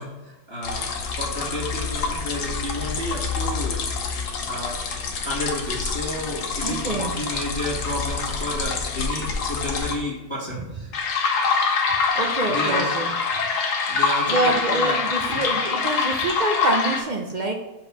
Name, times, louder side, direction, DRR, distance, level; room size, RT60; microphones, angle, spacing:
voice 1, 0.0-3.8 4.5-4.8 5.2-10.9 12.4-13.0 13.9-15.0 15.2-15.5, left 1 dB, 20° left, -6 dB, 1.5 m, -31 dB
sound 1, 0.6-9.9 10.9-17.0, left 4 dB, 90° left, 1.5 m, -25 dB
voice 2, 6.6-7.2 10.5-10.6 12.1-13.1 14.3-17.5, right 2 dB, 55° right, 2 dB, 0.5 m, -26 dB
5.1 x 4.6 x 5.6 m, 1.1 s
omnidirectional pair, 1.6 m